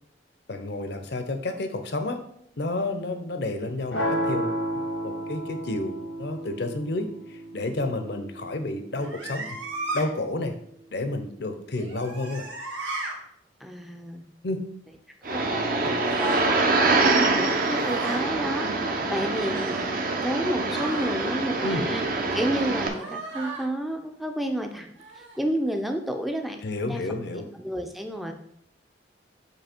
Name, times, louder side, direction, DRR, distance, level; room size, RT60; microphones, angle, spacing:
voice 1, 0.5-2.2 2.6-4.5 5.0-9.6 9.9-10.6 10.9-12.5 14.4-14.6 15.8-15.9 21.6-21.8 26.6-27.4, left 2 dB, 60° left, 7 dB, 0.7 m, -30 dB
sound 1, 3.9-9.9, equal, 85° left, 1.2 m, -32 dB
sound 2, 9.0-10.0 11.7-13.2 16.0-16.5 17.3-18.2 19.5-19.9 20.7-21.1 22.9-23.7 25.0-25.4, right 2 dB, 85° right, 1.4 m, -36 dB
voice 2, 13.6-14.2 15.2-15.5 16.5-16.6 17.4-19.8 20.2-22.0 22.3-24.9 25.4-26.6 26.9-27.0 27.4-28.3, right 1 dB, ahead, 4 dB, 0.5 m, -30 dB
sound 3, 15.2-22.9, right 3 dB, 50° right, 0.7 m, -25 dB
7.7 x 2.8 x 4.4 m, 0.72 s
head